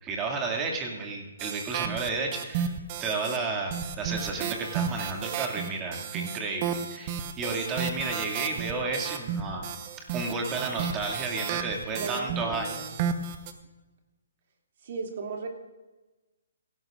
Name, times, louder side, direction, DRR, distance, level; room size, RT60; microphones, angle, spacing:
voice 1, 0.0-2.7 3.0-9.7 10.1-12.8, right 3 dB, 20° right, 1 dB, 2.3 m, -32 dB
sound 1, 1.4-3.4 3.7-13.5, right 7 dB, 35° right, 1.0 m, -33 dB
voice 2, 10.5-10.9 11.9-12.9 14.8-15.5, right 4 dB, 55° right, 1 dB, 2.7 m, -37 dB
17.0 x 15.5 x 2.5 m, 1.1 s
hypercardioid pair, 145°, 0 cm